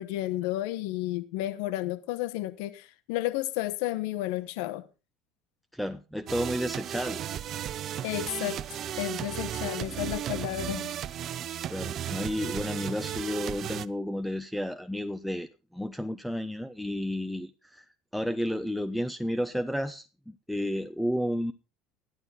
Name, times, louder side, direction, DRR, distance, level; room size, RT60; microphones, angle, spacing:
voice 1, 0.0-4.9 8.0-10.9, left 15 dB, 75° left, 0.9 m, -32 dB
voice 2, 5.7-7.2 9.6-9.8 11.7-17.8 18.1-21.5, equal, ahead, 0.8 m, -32 dB
sound 1, 6.3-13.9, right 10 dB, 50° right, 0.7 m, -35 dB
13.0 x 11.0 x 4.0 m
supercardioid pair, 85°, 0 cm